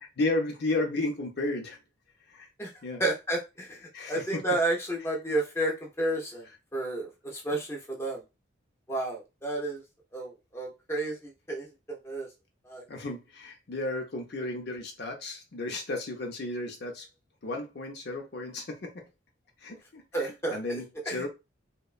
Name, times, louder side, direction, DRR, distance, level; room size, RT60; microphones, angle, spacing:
voice 1, 0.2-1.8 2.3-2.5 2.8-3.0 3.9-4.4 7.5-7.6 12.9-17.1 17.4-18.9 19.6-21.3, left 2 dB, 55° left, 0.6 m, -33 dB
voice 2, 3.0-3.8 4.1-6.4 6.7-8.2 8.9-9.8 10.1-12.3 12.7-12.8 20.1-20.8 21.1-21.2, right 2 dB, 15° left, 0.6 m, -31 dB
2.9 x 2.2 x 2.4 m
head